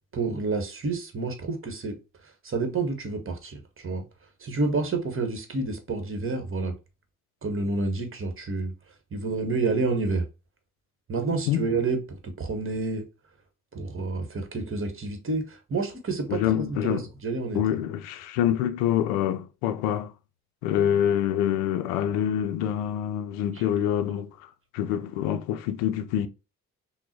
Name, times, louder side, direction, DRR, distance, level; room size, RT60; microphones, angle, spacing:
voice 1, 0.1-1.9 2.4-4.0 4.4-6.8 7.4-8.7 9.1-10.2 11.1-13.0 13.7-17.8 23.5-23.6, right 3 dB, 30° right, 1.3 m, -29 dB
voice 2, 16.3-17.1 17.5-20.1 20.6-26.3, left 10 dB, 60° left, 0.6 m, -26 dB
5.8 x 2.2 x 2.9 m
figure-of-eight pair, 45°, 43 cm